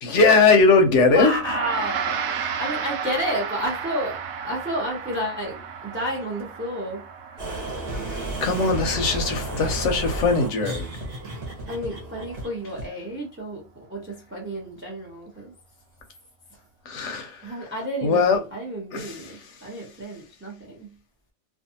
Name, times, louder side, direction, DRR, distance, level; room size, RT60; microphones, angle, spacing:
voice 1, 0.0-1.3 2.4-2.5 7.5-7.7 8.1-10.9 16.9-17.5 18.0-18.4 18.9-19.4, left 4 dB, 65° left, 0.8 m, -20 dB
voice 2, 1.1-2.2 2.6-4.2 4.4-7.0 11.7-15.5 16.5-16.6 17.0-20.9, equal, 15° right, 0.4 m, -31 dB
Gong, 1.4-10.9, right 7 dB, 85° right, 1.0 m, -33 dB
sound 1, 7.4-12.9, right 2 dB, 50° right, 1.0 m, -32 dB
2.6 x 2.3 x 2.6 m
omnidirectional pair, 1.4 m